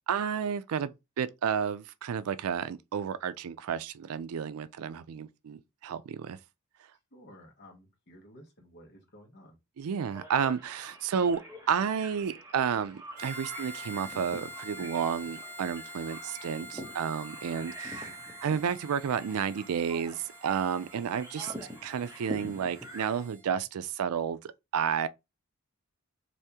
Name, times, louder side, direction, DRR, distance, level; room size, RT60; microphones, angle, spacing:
voice 1, 0.1-0.9 1.2-6.4 9.8-11.4 11.7-21.5 21.8-25.1, right 7 dB, 80° right, 0.4 m, -31 dB
voice 2, 7.1-9.6 17.4-17.6 23.4-23.6, equal, 50° left, 1.1 m, -54 dB
sound 1, 10.1-23.2, right 1 dB, 15° right, 0.7 m, -46 dB
Harmonica, 13.1-23.4, equal, 35° right, 1.2 m, -46 dB
3.5 x 2.6 x 2.7 m
head